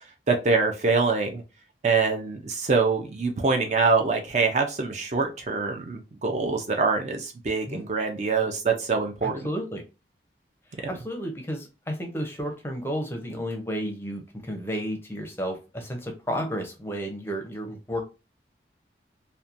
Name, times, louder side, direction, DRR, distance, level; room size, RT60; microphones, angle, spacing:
voice 1, 0.3-1.4 1.8-9.5, right 4 dB, 40° right, 3 dB, 0.4 m, -24 dB
voice 2, 9.2-9.8 10.9-18.0, equal, 15° left, 3 dB, 0.5 m, -32 dB
2.8 x 2.2 x 2.4 m, 0.28 s
head